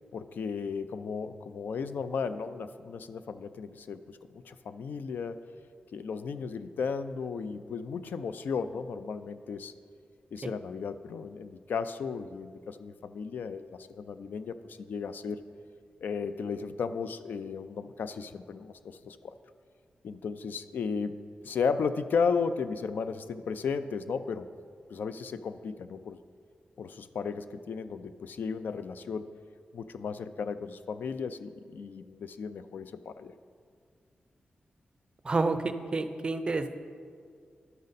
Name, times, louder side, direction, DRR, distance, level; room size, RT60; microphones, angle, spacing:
voice 1, 0.1-5.4 5.9-9.7 10.3-15.4 16.0-19.3 20.0-24.5 24.9-26.2 26.8-29.3 29.7-33.3, left 5 dB, 80° left, 12 dB, 0.3 m, -35 dB
voice 2, 35.2-36.7, right 3 dB, 30° right, 9 dB, 0.4 m, -29 dB
12.0 x 5.3 x 4.0 m, 2.1 s
wide cardioid pair, 135°, 3 cm